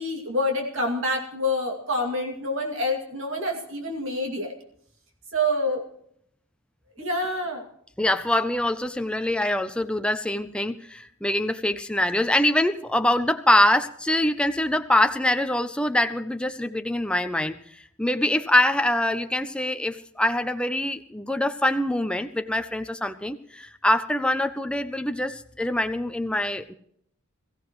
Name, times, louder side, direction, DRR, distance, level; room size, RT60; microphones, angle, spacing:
voice 1, 0.0-4.5 5.3-5.8 7.0-7.6, left 1 dB, 60° right, 1 dB, 2.5 m, -27 dB
voice 2, 8.0-17.6 18.0-26.7, left 1 dB, 5° left, 8 dB, 0.5 m, -24 dB
22.0 x 15.0 x 3.1 m, 0.67 s
head